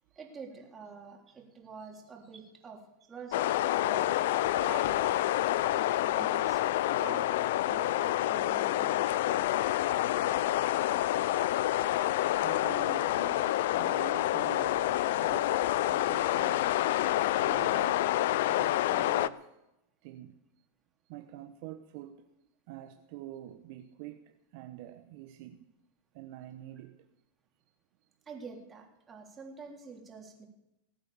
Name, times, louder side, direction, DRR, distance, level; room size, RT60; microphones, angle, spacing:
voice 1, 0.2-2.8 3.1-9.4 28.3-30.5, right 5 dB, 25° right, 3.5 m, -47 dB
sound 1, 3.3-19.3, left 14 dB, 70° left, 0.5 m, -28 dB
voice 2, 12.4-16.6 17.4-18.2 18.5-19.5 20.0-20.4 21.1-22.2 22.7-25.6 26.1-27.0, right 13 dB, 60° right, 1.0 m, -46 dB
19.5 x 8.7 x 7.1 m
hypercardioid pair, 100°, 0 cm